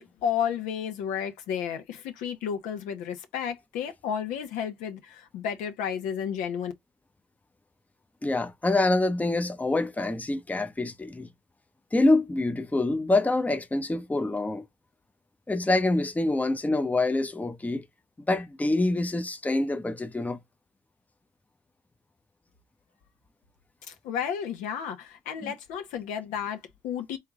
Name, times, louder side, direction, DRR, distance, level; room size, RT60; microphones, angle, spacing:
voice 1, 0.0-6.7 23.9-27.2, left 8 dB, 75° left, 1.0 m, -32 dB
voice 2, 8.2-11.3 11.9-14.6 15.5-17.8 18.3-20.4 25.4-25.5, left 2 dB, 10° left, 0.7 m, -26 dB
3.4 x 3.4 x 3.6 m
supercardioid pair, 70°, 13 cm